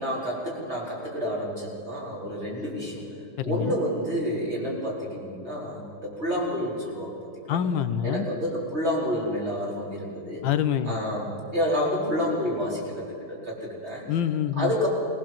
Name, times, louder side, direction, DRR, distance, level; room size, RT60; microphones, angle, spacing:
voice 1, 0.0-3.0 3.4-7.2 7.4-7.6 8.0-10.4 10.9-14.0 14.6-14.9, equal, 30° right, -4 dB, 4.9 m, -29 dB
voice 2, 3.4-3.8 7.5-8.3 10.4-11.0 14.1-14.7, left 9 dB, 80° left, 11 dB, 1.4 m, -26 dB
20.5 x 19.0 x 7.4 m, 2.7 s
omnidirectional pair, 2.1 m